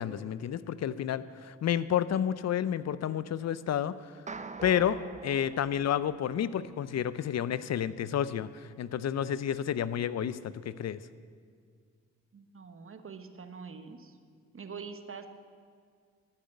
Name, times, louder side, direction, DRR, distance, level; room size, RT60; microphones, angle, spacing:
voice 1, 0.0-4.1 4.6-11.0, left 9 dB, 55° left, 16 dB, 0.6 m, -30 dB
sound 1, 4.3-6.7, right 4 dB, 20° right, 0.6 m, -44 dB
voice 2, 12.3-14.2 14.5-15.3, right 5 dB, 40° right, 7 dB, 1.2 m, -44 dB
13.0 x 6.7 x 8.2 m, 2.1 s
supercardioid pair, 50°, 32 cm